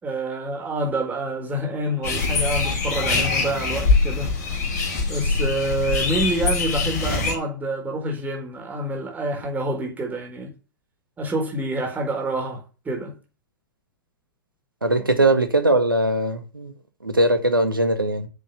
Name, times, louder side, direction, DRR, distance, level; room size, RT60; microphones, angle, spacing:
voice 1, 0.0-4.3 5.1-10.5 11.2-13.1, right 1 dB, 15° right, 4.3 m, -27 dB
sound 1, 2.0-7.4, left 4 dB, 55° left, 3.8 m, -23 dB
voice 2, 14.8-16.7 17.0-18.3, right 1 dB, 85° right, 1.9 m, -20 dB
9.1 x 7.3 x 6.9 m
figure-of-eight pair, 100°, 11 cm